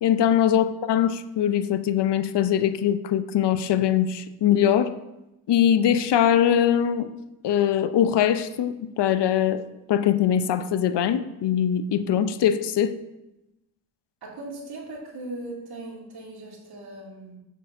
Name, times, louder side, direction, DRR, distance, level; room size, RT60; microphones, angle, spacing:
voice 1, 0.0-4.9 5.5-7.1 7.4-9.6 9.9-13.0, left 9 dB, 65° left, 12 dB, 0.8 m, -22 dB
voice 2, 14.2-17.4, right 2 dB, 55° right, -4 dB, 3.2 m, -38 dB
7.4 x 6.3 x 5.6 m, 0.96 s
cardioid pair, 60°, 44 cm